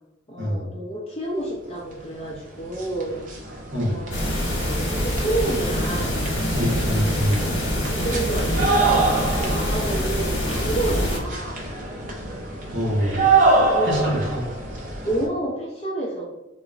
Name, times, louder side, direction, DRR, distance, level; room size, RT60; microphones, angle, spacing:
voice 1, 0.3-3.2 3.9-4.1 4.7-6.2 7.9-9.0 9.3-11.8 13.7-14.2 15.0-16.2, right 1 dB, 30° left, -5 dB, 0.4 m, -29 dB
sound 1, 2.2-2.3 2.6-15.3, right 3 dB, 40° right, 0.5 m, -26 dB
sound 2, 4.1-11.2, equal, 70° left, 1.0 m, -25 dB
voice 2, 6.5-7.4 12.7-13.3 13.8-14.4, equal, 70° right, -4 dB, 1.0 m, -24 dB
3.7 x 2.1 x 2.4 m, 0.95 s
head